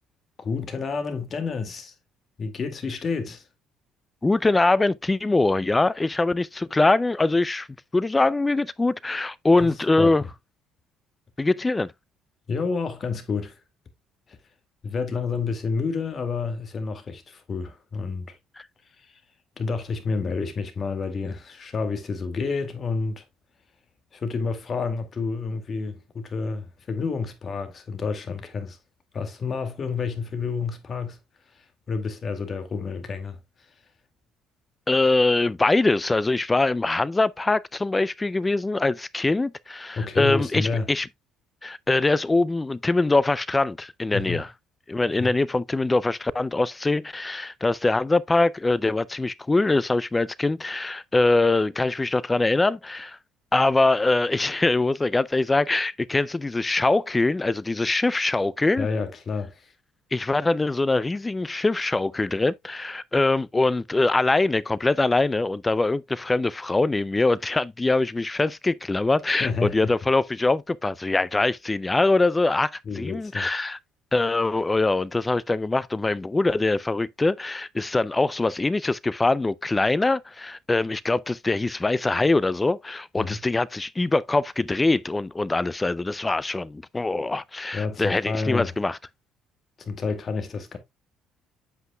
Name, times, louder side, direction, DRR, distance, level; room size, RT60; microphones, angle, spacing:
voice 1, 0.4-1.9 2.4-3.4 9.6-10.2 12.5-13.6 14.3-14.4 14.8-18.4 19.0-19.2 19.6-23.2 24.1-28.8 29.1-31.2 31.5-33.4 40.0-40.9 44.1-44.4 45.2-45.3 58.8-59.7 69.3-69.9 72.8-73.5 83.2-83.4 87.7-88.7 89.8-90.8, left 4 dB, 35° left, 2.0 m, -29 dB
voice 2, 4.2-7.7 7.9-10.2 11.4-11.9 18.6-18.7 34.9-41.1 41.6-44.5 44.9-53.2 53.5-58.9 60.1-73.8 74.1-89.0, left 2 dB, 15° left, 0.3 m, -23 dB
8.1 x 7.8 x 2.2 m
cardioid pair, 110°, 0 cm